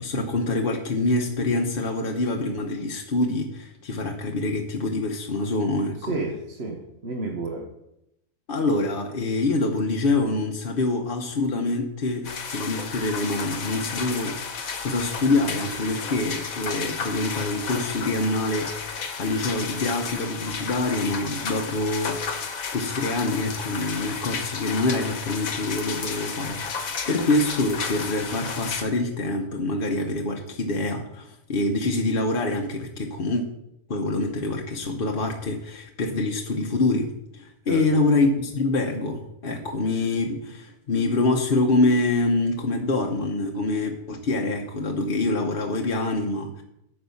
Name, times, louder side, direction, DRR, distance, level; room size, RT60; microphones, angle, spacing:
voice 1, 0.0-6.2 8.5-22.5 22.7-33.4 33.9-46.6, left 2 dB, 45° left, 1 dB, 1.1 m, -25 dB
voice 2, 6.0-7.7 27.2-27.3 37.7-38.0, right 3 dB, 50° right, -1 dB, 1.4 m, -31 dB
sound 1, 12.2-28.8, left 5 dB, 85° left, 1.5 m, -33 dB
9.4 x 5.6 x 6.9 m, 0.81 s
omnidirectional pair, 1.4 m